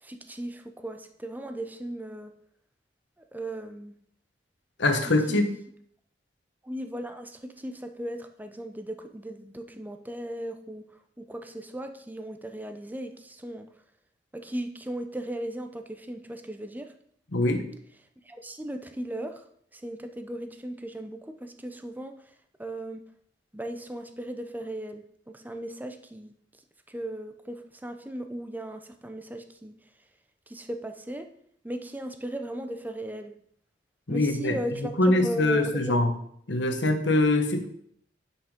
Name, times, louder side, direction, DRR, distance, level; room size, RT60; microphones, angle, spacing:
voice 1, 0.0-2.3 3.3-3.9 5.0-5.5 6.6-13.7 14.3-16.9 18.2-19.4 19.7-22.3 22.6-23.0 23.5-26.3 26.9-29.7 30.5-31.3 31.6-33.3 34.1-36.0, right 1 dB, 10° right, 7 dB, 0.7 m, -37 dB
voice 2, 4.8-5.5 17.3-17.6 34.1-34.6 35.0-36.1 36.5-37.7, left 2 dB, 80° left, 6 dB, 1.2 m, -23 dB
9.1 x 6.0 x 5.2 m, 0.66 s
head